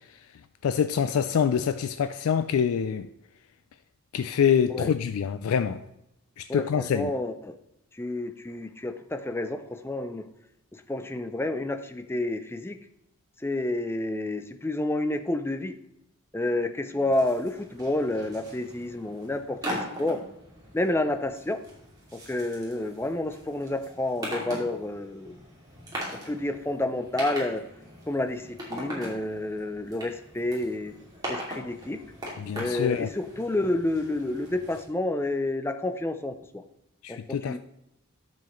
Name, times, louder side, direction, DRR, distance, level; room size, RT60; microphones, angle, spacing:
voice 1, 0.6-3.1 4.1-5.8 6.4-7.1 32.4-33.1 37.0-37.6, left 7 dB, 80° left, 0.3 m, -25 dB
voice 2, 6.5-7.5 8.0-10.2 10.7-12.8 13.4-15.8 16.3-20.2 20.7-21.6 22.1-25.4 26.3-27.6 28.1-30.9 31.3-32.0 32.6-36.6 37.1-37.6, left 2 dB, 10° left, 0.4 m, -29 dB
sound 1, 17.0-34.8, equal, 20° right, 2.4 m, -41 dB
10.5 x 7.1 x 3.1 m
head